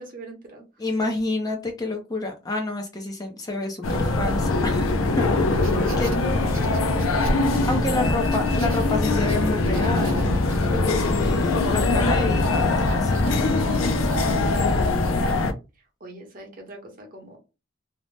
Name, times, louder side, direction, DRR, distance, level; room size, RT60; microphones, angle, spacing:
voice 1, 0.0-0.9 7.0-7.1 16.0-17.4, right 2 dB, 45° right, 2 dB, 0.8 m, -43 dB
voice 2, 0.8-5.3 6.0-6.2 7.7-10.3 10.7-14.1, left 2 dB, 20° left, 3 dB, 0.4 m, -29 dB
sound 1, 3.8-15.5, left 2 dB, 85° left, 0.5 m, -22 dB
sound 2, 5.4-15.3, right 4 dB, 80° right, 0.7 m, -42 dB
2.6 x 2.0 x 3.1 m, 0.28 s
head